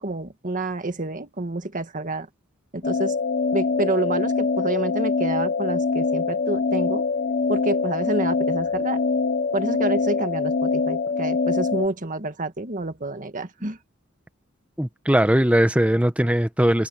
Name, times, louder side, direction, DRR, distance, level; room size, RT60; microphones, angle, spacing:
voice 1, 0.0-2.3 2.7-3.1 3.5-7.0 7.5-9.0 9.5-13.8, right 2 dB, 40° right, 1.8 m, -28 dB
sound 1, 2.8-11.9, left 4 dB, 45° left, 1.1 m, -24 dB
voice 2, 14.8-16.9, right 1 dB, 5° right, 1.1 m, -19 dB
head